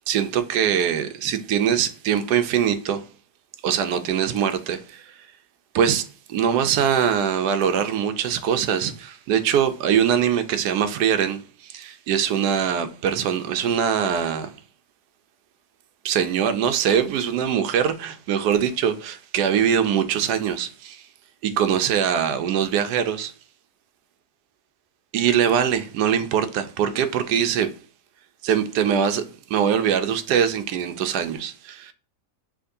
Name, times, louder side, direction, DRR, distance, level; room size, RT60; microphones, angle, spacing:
voice 1, 0.1-3.0 3.6-5.1 5.7-6.0 6.3-14.5 16.0-21.0 21.4-23.3 25.1-27.7 28.4-29.2 29.5-31.9, right 8 dB, 75° right, 1.1 m, -22 dB
6.0 x 2.9 x 2.6 m
omnidirectional pair, 1.8 m